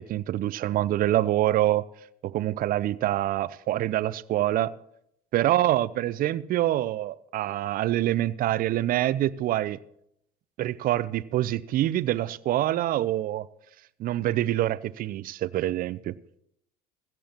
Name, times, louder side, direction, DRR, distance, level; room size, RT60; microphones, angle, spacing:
voice 1, 0.0-1.9 2.2-4.7 5.3-9.8 10.6-13.5 14.0-16.1, right 14 dB, 45° right, 19 dB, 0.5 m, -26 dB
16.5 x 15.0 x 2.9 m, 0.76 s
hypercardioid pair, 70°, 20 cm